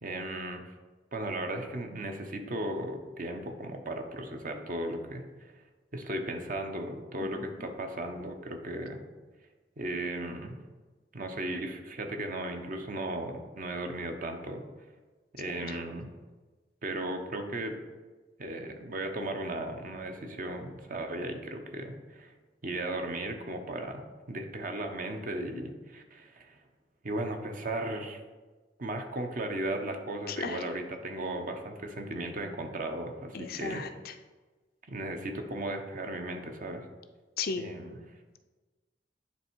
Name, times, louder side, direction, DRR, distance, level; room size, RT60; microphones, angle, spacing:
voice 1, 0.0-0.7 1.1-5.5 5.9-9.0 9.8-10.6 11.1-14.6 15.3-16.1 16.8-17.7 18.4-22.3 22.6-26.6 27.0-28.2 28.8-33.8 34.9-36.9 37.6-38.0, right 1 dB, 50° right, 5 dB, 0.8 m, -36 dB
voice 2, 30.3-30.6 33.3-34.1 37.4-37.6, left 5 dB, 55° left, 8 dB, 0.5 m, -35 dB
9.8 x 3.3 x 4.6 m, 1.3 s
head